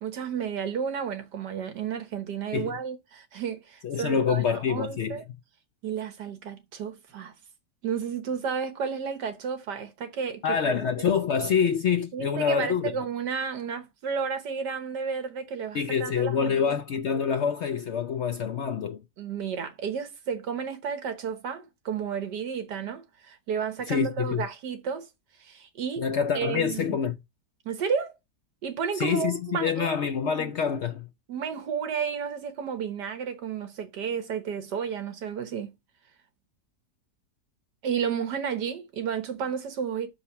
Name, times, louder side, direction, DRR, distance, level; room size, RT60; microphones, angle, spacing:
voice 1, 0.0-5.2 5.8-7.3 7.8-10.8 12.1-16.8 19.2-25.1 25.4-26.1 26.3-27.0 27.7-28.1 28.6-30.0 30.2-30.5 31.3-35.7 37.8-40.1, right 7 dB, 75° right, 1.8 m, -32 dB
voice 2, 3.8-5.2 10.4-12.9 15.7-19.0 23.9-24.4 26.0-27.1 28.9-31.1, left 7 dB, 75° left, 0.6 m, -26 dB
5.8 x 5.1 x 5.6 m
omnidirectional pair, 1.8 m